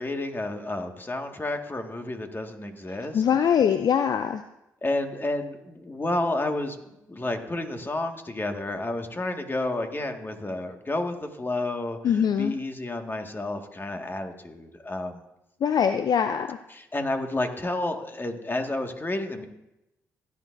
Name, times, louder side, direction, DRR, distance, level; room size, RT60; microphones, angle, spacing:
voice 1, 0.0-3.2 4.8-6.8 7.1-15.2 16.7-19.5, left 2 dB, 25° left, 4 dB, 1.8 m, -30 dB
voice 2, 3.1-4.4 12.0-12.5 15.6-16.6, left 8 dB, 55° left, 9 dB, 0.5 m, -22 dB
16.5 x 11.0 x 2.6 m, 0.90 s
hypercardioid pair, 45°, 8 cm